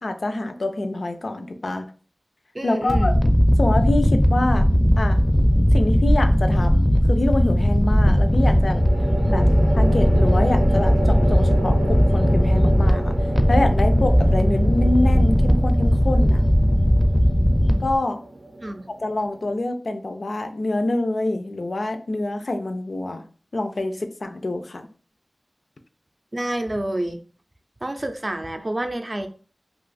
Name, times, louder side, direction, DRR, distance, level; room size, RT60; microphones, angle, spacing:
voice 1, 0.0-1.9 2.6-3.2 3.6-4.6 5.0-5.2 5.7-8.8 9.3-9.5 9.8-13.1 13.5-16.4 17.8-18.2 19.0-23.2 23.5-24.9, left 2 dB, 85° left, 7 dB, 0.4 m, -26 dB
voice 2, 2.5-3.2 18.6-18.9 26.3-27.2 27.8-29.3, right 1 dB, 40° right, 6 dB, 0.4 m, -28 dB
sound 1, 2.9-18.0, equal, 15° left, 0.5 m, -18 dB
sound 2, 5.2-5.7 8.3-19.6, right 2 dB, 90° right, 0.6 m, -32 dB
2.6 x 2.4 x 3.9 m, 0.39 s
wide cardioid pair, 55°, 0 cm